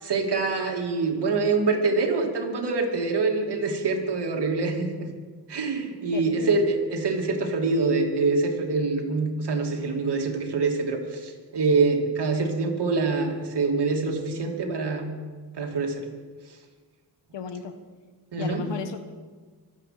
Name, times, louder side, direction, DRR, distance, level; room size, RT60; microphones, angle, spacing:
voice 1, 0.0-5.1 5.5-15.1 15.6-16.1 18.3-18.6, right 3 dB, 70° right, 2 dB, 2.6 m, -25 dB
voice 2, 6.1-6.6 17.3-17.8 18.4-19.0, left 5 dB, 90° left, 8 dB, 1.4 m, -34 dB
24.5 x 8.3 x 5.9 m, 1.5 s
cardioid pair, 90°, 42 cm